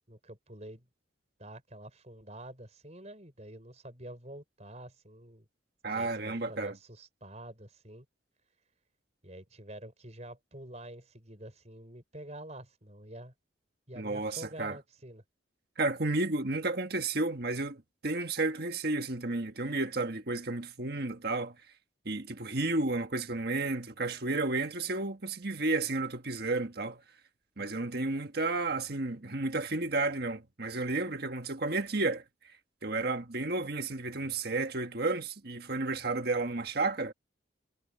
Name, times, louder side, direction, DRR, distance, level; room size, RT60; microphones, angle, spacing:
voice 1, 0.1-0.9 1.4-5.5 5.9-8.1 9.2-13.3 13.9-15.2, right 1 dB, 35° right, 5.4 m, -47 dB
voice 2, 5.8-6.8 13.9-14.8 15.8-21.5 22.0-27.0 27.6-32.2 32.8-37.1, right 2 dB, 55° right, 1.7 m, -32 dB
head